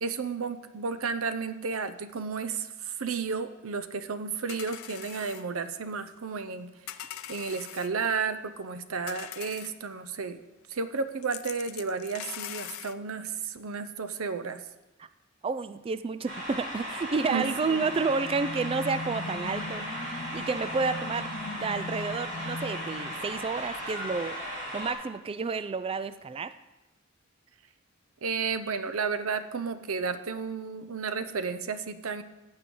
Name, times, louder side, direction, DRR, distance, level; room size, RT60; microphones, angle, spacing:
voice 1, 0.0-6.7 7.3-10.4 10.7-14.6 17.3-17.8 28.2-32.2, right 5 dB, 85° right, 11 dB, 0.7 m, -32 dB
sound 1, 4.5-5.5 6.9-7.9 9.1-9.7 11.2-12.9, left 11 dB, 90° left, 0.5 m, -41 dB
voice 2, 15.4-19.8 20.3-24.4 24.7-26.5, right 4 dB, 25° right, 13 dB, 0.3 m, -30 dB
sound 2, 16.2-24.9, equal, 55° right, 4.3 m, -37 dB
sound 3, 17.6-23.9, left 2 dB, 40° left, 0.8 m, -40 dB
15.5 x 8.7 x 3.8 m, 1.0 s
head